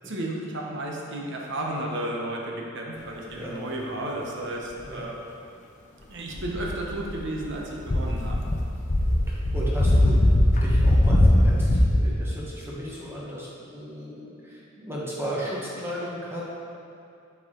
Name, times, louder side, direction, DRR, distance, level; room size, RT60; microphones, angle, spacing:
voice 1, 0.0-5.2 6.1-8.4, right 1 dB, 60° right, -1 dB, 1.0 m, -33 dB
voice 2, 4.7-5.1 9.1-10.2 10.6-16.5, equal, 10° right, -6 dB, 1.3 m, -35 dB
sound 1, 6.3-7.5 7.8-12.0, left 1 dB, 35° left, 0.6 m, -20 dB
8.2 x 4.8 x 3.8 m, 2.5 s
head